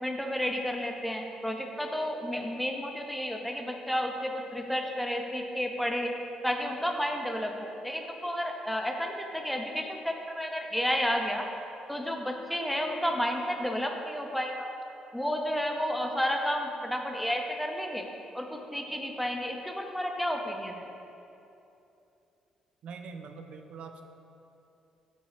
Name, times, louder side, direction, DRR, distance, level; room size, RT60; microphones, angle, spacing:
voice 1, 0.0-6.1 6.4-11.5 11.9-14.7 15.1-18.1 18.3-20.8, equal, ahead, 2 dB, 0.7 m, -31 dB
voice 2, 22.8-24.0, right 5 dB, 55° right, 6 dB, 0.5 m, -43 dB
7.2 x 4.0 x 4.4 m, 2.8 s
figure-of-eight pair, 45°, 2 cm